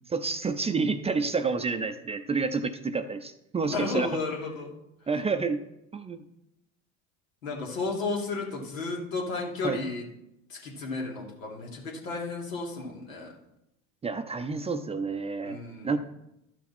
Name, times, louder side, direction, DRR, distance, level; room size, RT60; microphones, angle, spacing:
voice 1, 0.1-4.2 5.1-5.6 5.9-6.2 9.6-9.8 14.0-16.0, right 4 dB, 15° right, 9 dB, 0.6 m, -29 dB
voice 2, 3.6-4.7 7.4-10.1 10.5-13.3 15.4-16.0, left 3 dB, 85° left, -1 dB, 2.6 m, -33 dB
12.0 x 6.0 x 4.3 m, 0.85 s
hypercardioid pair, 90°, 39 cm